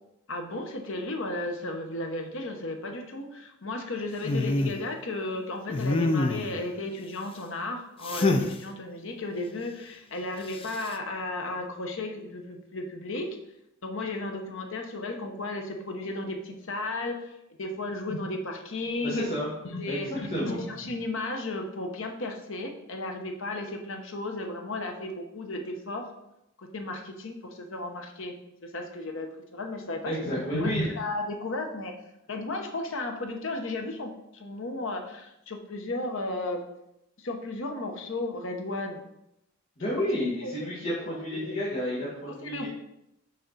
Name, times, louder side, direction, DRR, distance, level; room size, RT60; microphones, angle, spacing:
voice 1, 0.3-13.4 13.8-17.3 17.6-19.3 19.6-26.1 26.6-32.0 32.3-36.6 37.2-39.0 40.4-40.5 40.9-41.0 41.3-41.5 42.4-42.7, left 2 dB, 65° left, 4 dB, 1.0 m, -34 dB
sound 1, 4.2-4.8 5.7-6.6 8.0-8.5 10.5-10.9, left 2 dB, 25° left, 0.5 m, -26 dB
voice 2, 19.0-19.5 19.9-20.0 20.3-20.6 30.0-30.9 39.8-42.7, equal, 45° left, -8 dB, 1.9 m, -30 dB
6.5 x 5.8 x 4.1 m, 0.83 s
head